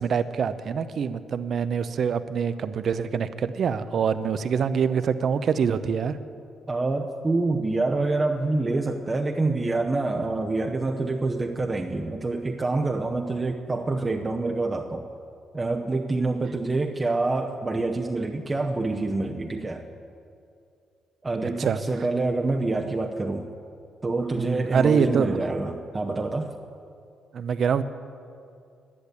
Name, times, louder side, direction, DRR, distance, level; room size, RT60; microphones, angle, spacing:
voice 1, 0.0-6.2 21.6-21.8 24.4-25.4 27.3-27.8, right 6 dB, 55° right, 12 dB, 0.6 m, -25 dB
voice 2, 6.7-15.1 15.5-19.8 21.2-23.5 24.0-26.5, right 3 dB, 25° right, 2 dB, 0.8 m, -26 dB
11.0 x 10.0 x 8.2 m, 2.4 s
cardioid pair, 90°, 0 cm